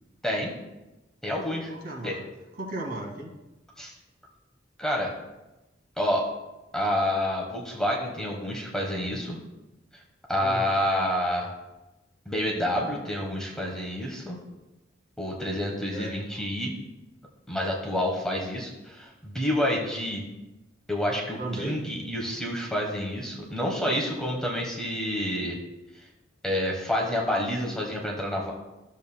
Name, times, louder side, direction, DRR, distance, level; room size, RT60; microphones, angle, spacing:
voice 1, 0.2-0.5 1.2-1.7 2.0-2.1 3.8-3.9 4.8-5.1 6.0-6.3 6.7-9.4 10.3-11.5 12.2-14.4 15.2-16.7 17.5-20.2 20.9-25.6 26.4-28.5, left 1 dB, 5° left, -2 dB, 1.1 m, -28 dB
voice 2, 1.7-2.2 2.6-3.3 10.4-10.7 15.9-16.2 21.4-21.8, right 1 dB, 55° right, -2 dB, 1.8 m, -34 dB
13.0 x 7.1 x 2.2 m, 1.0 s
head